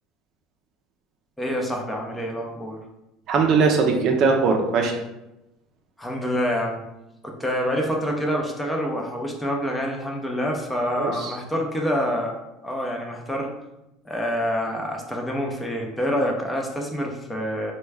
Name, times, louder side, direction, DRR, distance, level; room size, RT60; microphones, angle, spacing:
voice 1, 1.4-2.8 6.0-6.8 7.2-12.4 12.6-13.5 14.0-17.7, equal, 10° left, 0 dB, 0.6 m, -27 dB
voice 2, 3.3-4.9 11.0-11.3, right 4 dB, 55° right, 2 dB, 0.5 m, -20 dB
3.0 x 2.2 x 3.4 m, 0.91 s
supercardioid pair, 90°, 0 cm